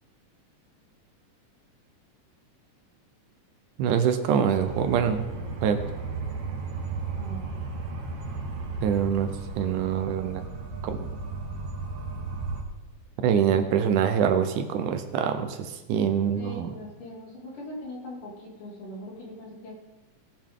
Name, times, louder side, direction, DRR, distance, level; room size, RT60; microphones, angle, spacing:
voice 1, 3.8-5.3 5.6-5.8 8.8-9.3 9.6-10.5 10.8-11.1 13.2-16.7, right 8 dB, 75° right, 8 dB, 2.1 m, -24 dB
sound 1, 4.5-12.6, right 3 dB, 55° right, 2.1 m, -35 dB
voice 2, 7.2-7.5 16.3-19.7, equal, 70° left, -4 dB, 4.2 m, -40 dB
19.0 x 7.1 x 3.7 m, 1.1 s
omnidirectional pair, 3.9 m